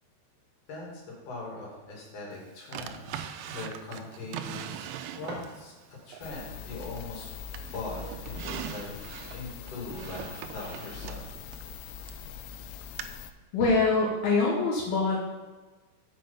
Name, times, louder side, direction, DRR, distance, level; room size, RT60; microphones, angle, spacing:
voice 1, 0.7-7.3 7.7-9.0 9.3-11.3, left 3 dB, 50° left, -4 dB, 3.3 m, -41 dB
Drawer open or close, 2.7-5.6 6.1-7.2 7.5-12.3 13.0-13.1, right 10 dB, 85° right, 2.8 m, -41 dB
sound 1, 5.2-6.2, right 2 dB, 55° right, 2.5 m, -45 dB
sound 2, 6.2-13.3, left 7 dB, 90° left, 3.0 m, -42 dB
voice 2, 13.5-15.2, left 3 dB, 70° left, -4 dB, 2.3 m, -24 dB
7.5 x 5.4 x 5.4 m, 1.3 s
omnidirectional pair, 5.5 m